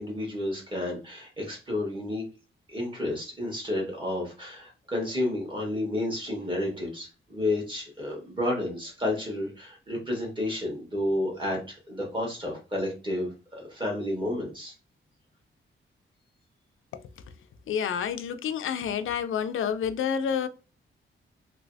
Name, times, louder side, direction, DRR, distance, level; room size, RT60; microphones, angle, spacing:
voice 1, 0.0-2.2 2.7-14.7, left 1 dB, 25° right, 1.4 m, -31 dB
voice 2, 17.7-20.5, left 8 dB, 75° left, 0.4 m, -29 dB
3.1 x 3.0 x 2.6 m
wide cardioid pair, 155°, 21 cm